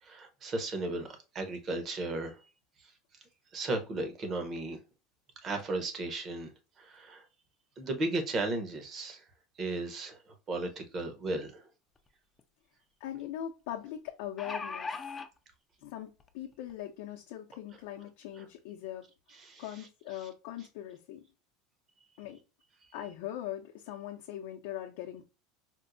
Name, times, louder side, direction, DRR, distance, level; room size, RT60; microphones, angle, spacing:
voice 1, 0.0-2.4 3.5-4.8 5.4-6.5 6.8-7.2 7.8-9.3 9.6-10.2 10.5-11.6 18.4-18.5 19.3-19.7 20.2-20.3, right 2 dB, 30° right, 6 dB, 0.8 m, -35 dB
sound 1, 12.0-12.1 12.4-12.5 14.1-15.3 16.2-16.3 16.7-16.8, left 4 dB, 20° left, 0.4 m, -38 dB
voice 2, 13.0-14.9 15.8-19.0 19.6-21.2 22.2-22.4 22.9-25.2, left 12 dB, 70° left, 0 dB, 0.5 m, -41 dB
4.4 x 2.0 x 2.5 m, 0.30 s
supercardioid pair, 140°, 0 cm